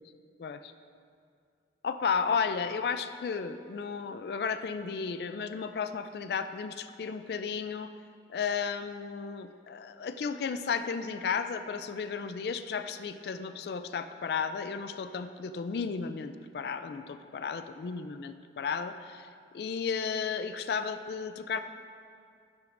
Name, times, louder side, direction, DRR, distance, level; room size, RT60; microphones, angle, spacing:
voice 1, 0.4-0.7 1.8-7.9 8.3-19.3 19.5-21.6, left 6 dB, 60° left, 10 dB, 0.3 m, -33 dB
11.5 x 9.3 x 2.5 m, 2.3 s
head